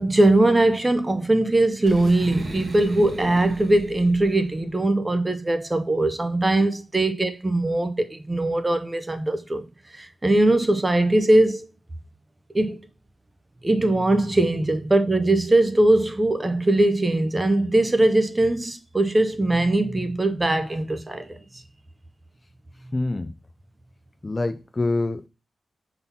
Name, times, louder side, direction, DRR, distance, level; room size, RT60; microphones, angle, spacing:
voice 1, 0.0-9.6 9.9-11.7 12.5-12.8 13.6-21.4, right 2 dB, 15° right, 0.6 m, -21 dB
Boom, 1.8-4.6, right 2 dB, 40° right, 1.4 m, -37 dB
voice 2, 22.7-23.3 24.2-25.3, left 2 dB, 20° left, 0.4 m, -26 dB
5.7 x 4.0 x 5.5 m
wide cardioid pair, 180°, 0 cm